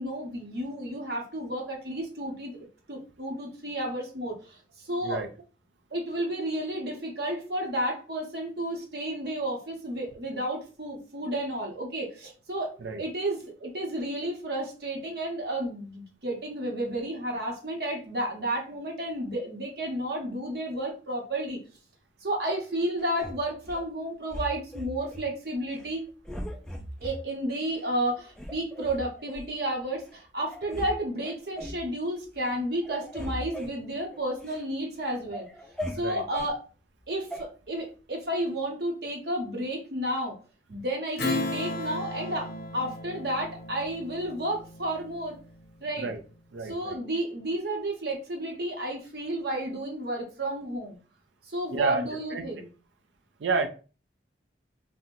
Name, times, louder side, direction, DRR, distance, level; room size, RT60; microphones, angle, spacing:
voice 1, 0.0-2.5 2.9-5.2 5.9-12.7 13.0-21.6 22.2-26.0 27.0-35.5 35.9-36.6 37.1-40.3 40.7-45.4 45.8-46.1 46.7-51.0 51.4-52.7, right 1 dB, 60° right, 0 dB, 0.8 m, -32 dB
sound 1, 23.2-23.8 24.3-25.3 25.7-25.9 26.2-27.2 27.7-27.8 28.3-29.5 30.1-30.2 30.5-30.9 31.2-31.8 32.3-32.6 32.8-34.6 35.0-36.5 37.3-37.4, equal, 5° left, 0.3 m, -39 dB
Strum, 41.2-46.1, left 2 dB, 55° left, 0.6 m, -35 dB
voice 2, 46.5-47.0 51.7-52.4 53.4-53.7, right 4 dB, 90° right, 7 dB, 0.4 m, -30 dB
2.7 x 2.1 x 3.6 m, 0.36 s
head